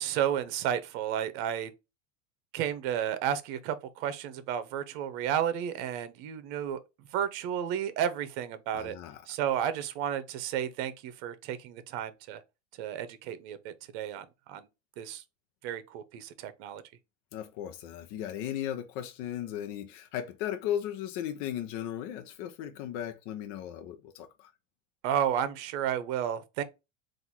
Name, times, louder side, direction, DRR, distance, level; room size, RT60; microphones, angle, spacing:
voice 1, 0.0-1.7 2.5-6.8 7.1-9.0 9.3-12.4 12.8-14.7 15.0-15.2 15.6-16.8 25.0-26.6, right 9 dB, 60° right, 0.8 m, -32 dB
voice 2, 8.7-9.3 17.3-24.5, left 10 dB, 55° left, 0.7 m, -36 dB
3.9 x 2.6 x 4.3 m
supercardioid pair, 125°, 38 cm